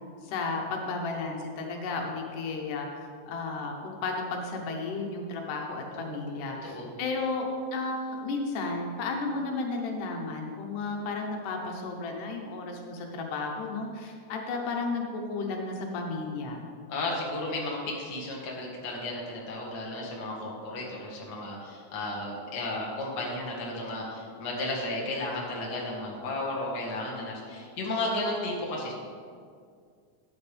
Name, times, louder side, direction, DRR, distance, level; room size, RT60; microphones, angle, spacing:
voice 1, 0.2-2.9 3.3-7.5 7.7-16.7, left 3 dB, 80° left, 1 dB, 2.6 m, -33 dB
voice 2, 5.9-6.9 16.9-28.9, left 2 dB, 40° left, -3 dB, 1.9 m, -34 dB
12.5 x 9.5 x 3.4 m, 2.1 s
omnidirectional pair, 3.6 m